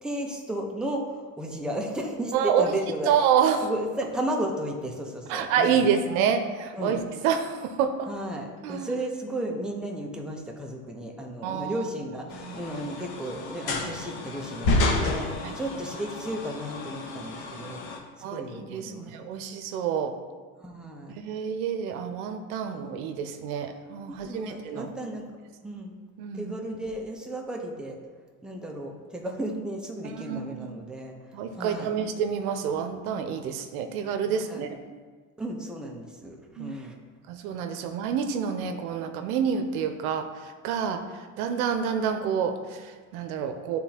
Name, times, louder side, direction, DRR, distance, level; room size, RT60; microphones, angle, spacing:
voice 1, 0.0-3.1 3.6-5.9 6.7-7.0 8.1-17.8 18.2-19.2 20.6-21.2 22.7-22.8 24.1-25.3 25.6-25.9 26.3-28.0 28.4-31.1 31.5-31.9 34.5-34.7 35.4-37.0 37.8-37.9, right 1 dB, ahead, 0 dB, 0.9 m, -34 dB
voice 2, 2.3-2.6 3.1-3.7 5.3-8.1 8.6-8.9 11.4-11.8 12.3-12.5 15.4-15.6 18.2-20.1 21.2-24.9 26.2-26.5 30.1-30.7 31.3-34.8 36.6-36.8 37.3-43.8, right 7 dB, 85° right, 7 dB, 0.8 m, -28 dB
sound 1, 12.3-18.0, left 2 dB, 60° left, 1.4 m, -30 dB
11.0 x 3.8 x 2.9 m, 1.4 s
supercardioid pair, 105°, 42 cm